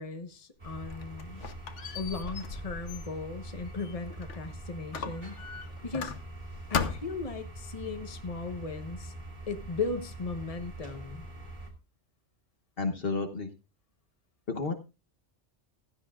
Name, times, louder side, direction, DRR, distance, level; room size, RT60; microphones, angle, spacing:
voice 1, 0.0-1.5 1.9-5.4 5.8-6.1 6.7-9.1 9.5-11.3, left 4 dB, 30° left, 1.2 m, -37 dB
sound 1, 0.6-11.7, right 1 dB, 40° right, 2.7 m, -44 dB
Squeak, 0.7-4.5 4.9-6.4 6.7-7.3, left 6 dB, 80° left, 1.4 m, -37 dB
voice 2, 12.8-13.5 14.5-14.7, left 3 dB, 55° left, 1.2 m, -31 dB
15.5 x 13.0 x 2.4 m
omnidirectional pair, 1.2 m